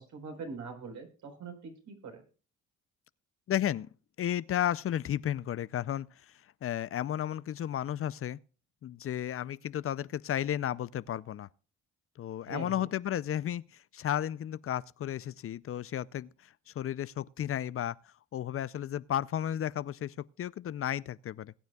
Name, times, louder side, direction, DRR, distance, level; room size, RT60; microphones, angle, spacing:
voice 1, 0.0-2.2 12.4-12.9, right 4 dB, 70° right, 4.5 m, -43 dB
voice 2, 3.5-3.9 4.2-6.1 6.6-8.4 8.8-11.5 12.2-16.3 16.7-18.0 18.3-21.5, left 11 dB, 50° left, 0.5 m, -33 dB
21.0 x 9.4 x 2.3 m
cardioid pair, 90°, 30 cm